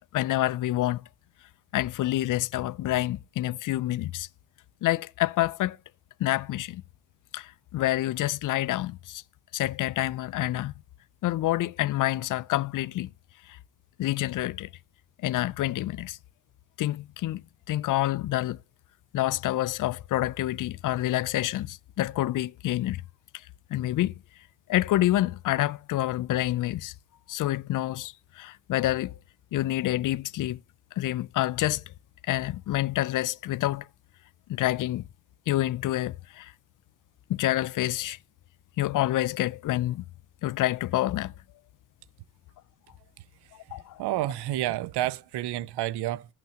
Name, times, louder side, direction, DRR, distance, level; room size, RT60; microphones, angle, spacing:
voice 1, 0.1-1.0 1.7-4.3 4.8-5.8 6.2-6.8 7.3-9.2 9.5-10.7 11.2-13.1 14.0-14.7 15.2-16.2 16.8-17.4 17.7-18.6 19.1-23.0 23.7-24.1 24.7-26.9 27.3-29.1 29.5-30.6 31.0-31.8 32.3-33.8 34.5-35.0 35.5-36.5 37.3-38.2 38.8-40.0 40.4-41.3 43.7-44.0, left 15 dB, 50° left, 0.4 m, -27 dB
voice 2, 44.0-46.3, right 14 dB, 75° right, 0.5 m, -29 dB
14.5 x 5.9 x 2.8 m
cardioid pair, 105°, 40 cm